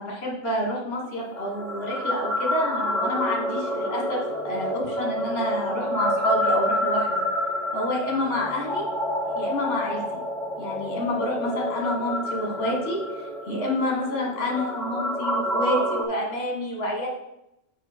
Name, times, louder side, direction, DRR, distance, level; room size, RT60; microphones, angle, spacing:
voice 1, 0.0-7.3 7.7-8.9 9.3-10.2 10.6-17.1, left 1 dB, 55° left, -1 dB, 1.8 m, -28 dB
sound 1, 1.3-16.0, equal, 5° left, 0.3 m, -28 dB
6.2 x 5.2 x 4.3 m, 0.86 s
omnidirectional pair, 1.3 m